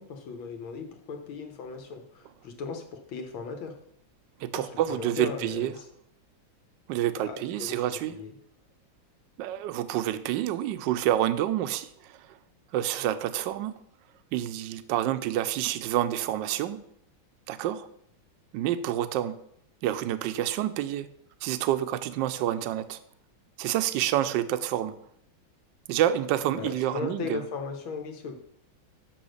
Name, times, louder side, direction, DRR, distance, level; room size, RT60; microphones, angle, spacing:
voice 1, 0.0-3.8 4.5-5.9 7.1-8.3 26.5-28.4, left 5 dB, 75° left, 4 dB, 1.9 m, -37 dB
voice 2, 4.4-5.7 6.9-8.1 9.4-12.4 12.7-13.8 14.3-16.8 17.5-17.9 18.5-19.4 19.8-21.1 21.4-23.0 23.6-24.9 25.9-27.4, right 12 dB, 75° right, 11 dB, 1.1 m, -28 dB
6.2 x 6.1 x 6.4 m, 0.70 s
omnidirectional pair, 2.2 m